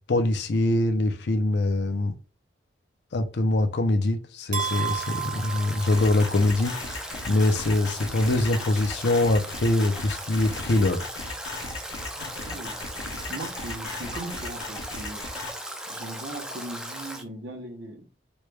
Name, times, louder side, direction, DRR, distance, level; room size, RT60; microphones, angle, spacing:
voice 1, 0.1-2.2 3.1-11.0, left 2 dB, 70° left, 0.5 m, -23 dB
sound 1, 4.5-6.7, right 9 dB, 45° right, 0.9 m, -33 dB
Stream / Drip / Trickle dribble, 4.6-17.2, right 1 dB, 5° right, 0.3 m, -38 dB
sound 2, 5.9-15.5, left 3 dB, 90° left, 1.0 m, -37 dB
voice 2, 12.2-12.8 13.3-15.2 15.9-18.0, right 1 dB, 75° right, 0.9 m, -39 dB
3.1 x 2.2 x 3.2 m
head